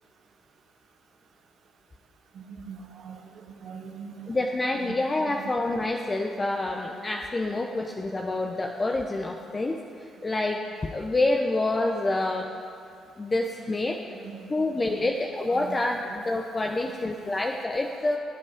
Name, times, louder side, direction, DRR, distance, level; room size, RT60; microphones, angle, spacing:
voice 1, 2.5-3.2 3.6-4.3 4.9-5.5 14.2-14.4 14.9-15.0 15.5-15.8, right 6 dB, 70° right, 3 dB, 1.3 m, -41 dB
voice 2, 4.3-9.8 10.2-12.5 13.2-14.0 14.5-18.2, left 2 dB, 30° left, 2 dB, 0.8 m, -27 dB
17.0 x 8.4 x 5.0 m, 2.4 s
supercardioid pair, 70°, 0 cm